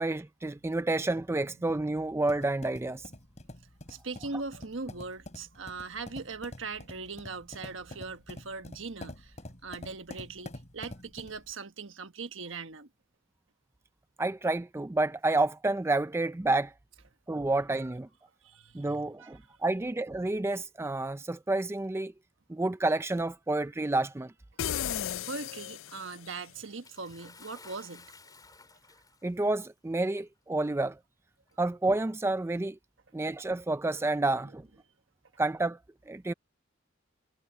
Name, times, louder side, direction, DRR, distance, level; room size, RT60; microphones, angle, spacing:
voice 1, 0.0-3.0 14.2-16.7 17.3-18.1 18.7-22.1 22.5-24.3 29.2-31.0 31.6-32.8 33.1-34.7 35.4-35.8 36.1-36.3, right 2 dB, 15° right, 0.4 m, -29 dB
sound 1, 1.7-11.5, left 1 dB, 35° left, 3.3 m, -47 dB
voice 2, 3.9-9.4 9.6-12.9 18.4-19.4 25.2-28.1, right 4 dB, 70° right, 1.4 m, -40 dB
sound 2, 24.6-26.4, left 10 dB, 75° left, 0.4 m, -34 dB
Bathtub (filling or washing) / Splash splatter, 26.8-29.4 30.4-30.5 31.5-31.6, left 4 dB, 20° left, 3.6 m, -54 dB
head